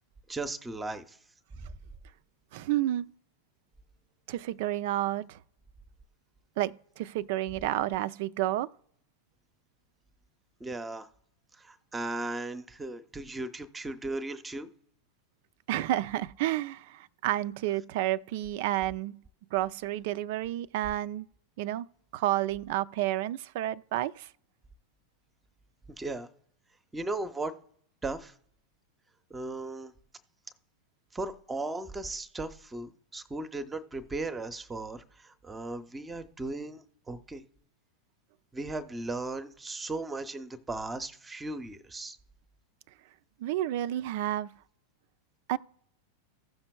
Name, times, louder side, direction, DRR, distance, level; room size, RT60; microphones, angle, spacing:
voice 1, 0.3-1.2 1.6-1.7 10.6-11.1 11.6-14.7 26.0-26.3 26.9-27.5 28.0-28.3 29.3-29.9 31.1-37.4 38.5-42.2, right 2 dB, 10° right, 0.7 m, -37 dB
voice 2, 2.5-3.1 4.3-5.4 6.6-8.7 15.7-19.2 19.5-21.3 21.6-21.9 22.1-24.3 43.4-44.5 45.5-45.6, right 14 dB, 50° right, 0.3 m, -30 dB
16.0 x 5.8 x 2.3 m
figure-of-eight pair, 90°, 0 cm